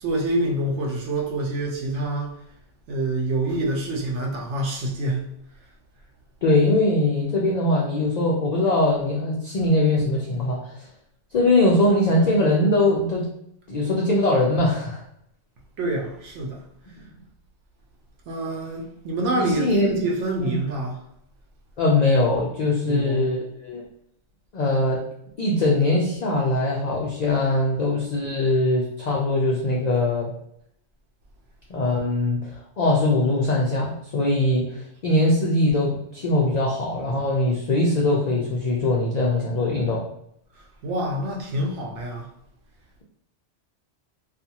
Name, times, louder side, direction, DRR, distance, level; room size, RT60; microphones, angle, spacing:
voice 1, 0.0-2.3 2.9-5.2 12.2-12.3 15.8-16.6 18.3-21.0 22.9-23.2 40.8-42.3, right 1 dB, 75° right, 0.9 m, -26 dB
voice 2, 6.4-10.7 11.3-13.3 13.7-15.0 19.3-20.0 20.4-20.6 21.8-23.8 24.5-25.0 25.4-30.3 31.7-32.5 32.8-40.0, left 2 dB, 80° left, 0.3 m, -21 dB
2.4 x 2.4 x 2.7 m
omnidirectional pair, 1.3 m